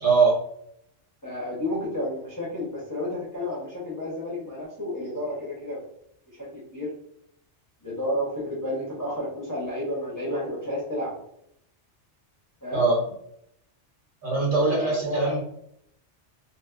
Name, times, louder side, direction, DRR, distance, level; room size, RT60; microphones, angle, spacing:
voice 1, 0.0-0.4 12.7-13.0 14.2-15.4, right 4 dB, 45° right, -7 dB, 1.4 m, -22 dB
voice 2, 1.2-5.8 6.3-6.9 7.8-11.3 12.6-12.8 14.6-15.4, left 1 dB, 20° left, -7 dB, 0.8 m, -31 dB
3.1 x 2.7 x 2.3 m, 0.73 s
omnidirectional pair, 1.2 m